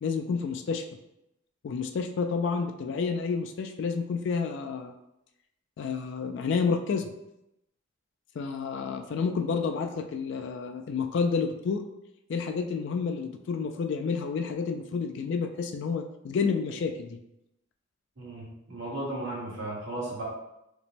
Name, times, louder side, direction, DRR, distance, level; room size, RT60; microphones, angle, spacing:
voice 1, 0.0-0.8 1.6-4.9 5.8-7.1 8.4-11.8 12.3-17.2, left 5 dB, 60° left, 6 dB, 0.3 m, -30 dB
voice 2, 18.2-20.2, right 1 dB, 65° right, -5 dB, 1.4 m, -35 dB
5.0 x 2.1 x 3.3 m, 0.86 s
head